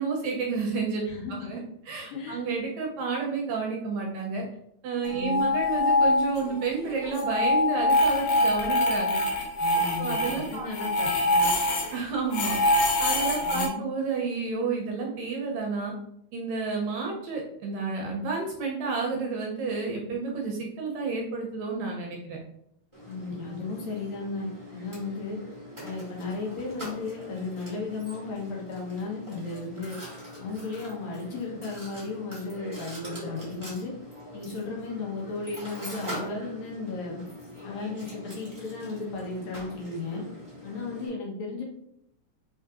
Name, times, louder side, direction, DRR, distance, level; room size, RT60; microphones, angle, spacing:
voice 1, 0.0-1.0 1.3-1.6 1.9-4.4 4.8-9.4 9.7-10.7 11.9-15.9 16.3-22.4, right 4 dB, 75° right, -1 dB, 1.7 m, -31 dB
voice 2, 1.1-1.4 2.1-2.4 5.1-5.4 9.6-11.5 13.4-13.8 23.1-25.4 25.8-30.0 30.4-33.9 34.3-37.2 37.6-40.2 40.6-41.6, left 3 dB, 70° left, -2 dB, 2.0 m, -35 dB
sound 1, 5.0-6.6 6.9-12.0 12.3-13.7, left 2 dB, 90° left, 2.4 m, -24 dB
Mechanisms, 22.9-41.1, equal, 20° right, 0.7 m, -43 dB
4.6 x 3.7 x 2.4 m, 0.75 s
omnidirectional pair, 3.6 m